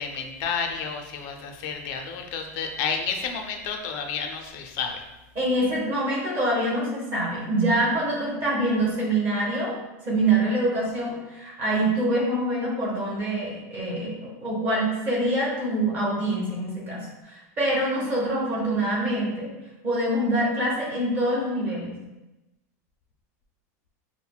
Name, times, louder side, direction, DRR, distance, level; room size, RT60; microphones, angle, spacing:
voice 1, 0.0-5.0, left 6 dB, 35° left, 3 dB, 0.4 m, -31 dB
voice 2, 5.3-9.8 10.0-19.5 19.8-21.9, right 1 dB, 25° right, -4 dB, 1.0 m, -25 dB
5.7 x 2.1 x 2.3 m, 1.0 s
supercardioid pair, 170°, 9 cm